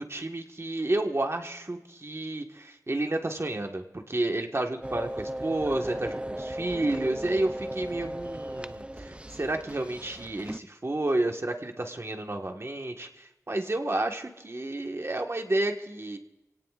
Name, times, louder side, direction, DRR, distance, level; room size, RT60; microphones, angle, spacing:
voice 1, 0.0-16.2, right 2 dB, 50° right, 3 dB, 1.5 m, -31 dB
sound 1, 4.8-10.6, right 1 dB, 20° right, 0.6 m, -36 dB
29.0 x 17.5 x 2.5 m, 0.98 s
wide cardioid pair, 50°, 6 cm